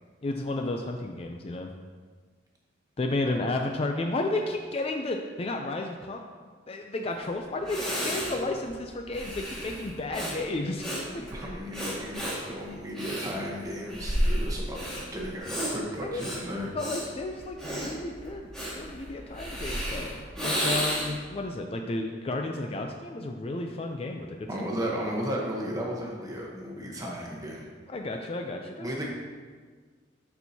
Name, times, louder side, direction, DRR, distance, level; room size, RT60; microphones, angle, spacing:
voice 1, 0.2-1.7 3.0-6.2 6.7-10.9 11.1-11.2 16.0-16.3 16.7-24.5 27.9-28.9, left 2 dB, 30° left, 3 dB, 0.4 m, -32 dB
Breathing, 7.2-7.3 7.6-21.3, equal, 5° left, 1.8 m, -32 dB
voice 2, 11.2-14.8 15.1-16.7 24.5-27.7 28.8-29.1, equal, 20° right, -2 dB, 1.0 m, -34 dB
11.0 x 4.5 x 2.8 m, 1.5 s
head